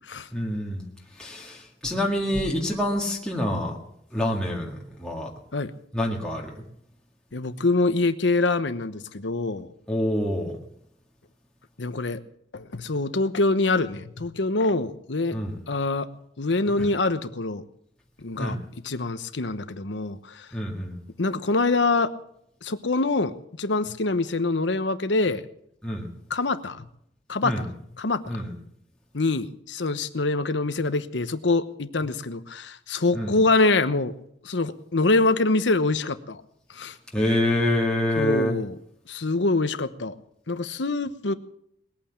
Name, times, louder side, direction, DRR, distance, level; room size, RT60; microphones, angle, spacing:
voice 1, 0.3-0.9 1.2-3.8 4.1-5.3 5.9-6.6 9.9-10.6 15.3-15.6 16.8-16.9 18.4-18.6 20.5-21.0 25.8-26.1 27.4-27.7 28.3-28.5 33.1-33.3 37.1-38.6, left 1 dB, 5° left, -2 dB, 1.9 m, -26 dB
voice 2, 7.3-9.7 11.8-12.2 12.5-15.4 15.7-16.1 16.4-17.6 18.2-18.6 18.8-20.5 21.2-22.1 22.6-25.4 26.3-26.8 27.3-27.7 28.0-28.4 29.1-34.1 34.4-36.4 36.7-36.9 38.2-38.8 39.1-40.1 40.5-41.3, left 3 dB, 80° left, 11 dB, 1.0 m, -25 dB
20.0 x 8.8 x 7.3 m, 0.73 s
head